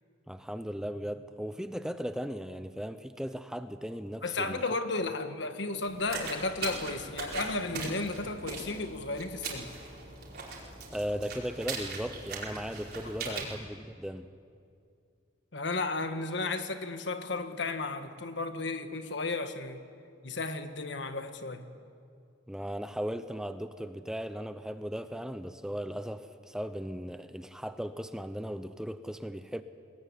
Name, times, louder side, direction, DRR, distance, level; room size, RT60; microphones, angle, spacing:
voice 1, 0.3-4.6 10.9-14.3 22.5-29.6, equal, 5° right, 10 dB, 0.6 m, -37 dB
voice 2, 4.2-9.7 13.2-13.5 15.5-19.8 20.2-21.6, left 3 dB, 65° left, 8 dB, 1.5 m, -34 dB
sound 1, 5.8-13.5, right 4 dB, 55° right, 4.9 m, -40 dB
22.5 x 19.5 x 9.7 m, 2.4 s
head